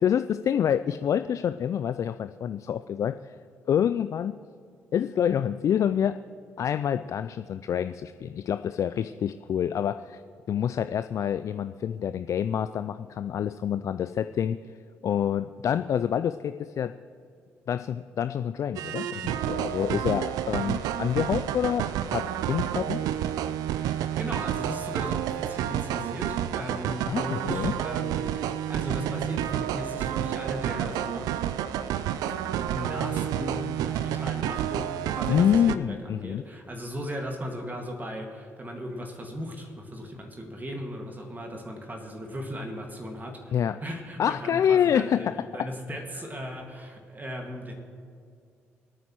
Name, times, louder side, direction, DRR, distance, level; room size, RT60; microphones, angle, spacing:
voice 1, 0.0-3.3 3.7-4.4 4.9-6.2 6.6-10.2 10.5-14.6 15.0-16.9 17.7-23.0 27.1-27.7 35.3-36.4 43.5-43.8 44.2-45.3, left 9 dB, 50° left, 11 dB, 0.4 m, -27 dB
sound 1, 18.8-35.8, right 11 dB, 70° right, 0.4 m, -30 dB
voice 2, 23.8-31.5 31.8-31.9 32.3-45.3 45.5-47.7, equal, 25° right, 2 dB, 1.9 m, -37 dB
24.5 x 9.1 x 3.1 m, 2.4 s
hypercardioid pair, 45°, 7 cm